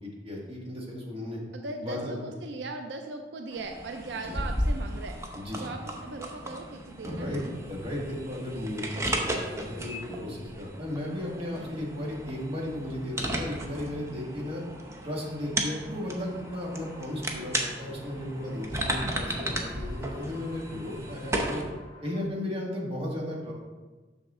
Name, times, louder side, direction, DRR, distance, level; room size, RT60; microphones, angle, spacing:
voice 1, 0.0-1.4 1.8-2.2 4.2-4.4 5.3-5.7 7.0-14.6 15.0-21.6 22.0-23.5, left 1 dB, 35° right, -3 dB, 1.7 m, -35 dB
voice 2, 1.5-5.2 5.6-7.7 13.2-13.7 18.5-18.9, right 3 dB, 80° right, 5 dB, 0.5 m, -39 dB
sound 1, 3.5-21.6, right 1 dB, 15° right, 0.8 m, -35 dB
sound 2, 15.8-22.3, left 2 dB, 30° left, 1.0 m, -51 dB
6.5 x 6.2 x 3.7 m, 1.3 s
head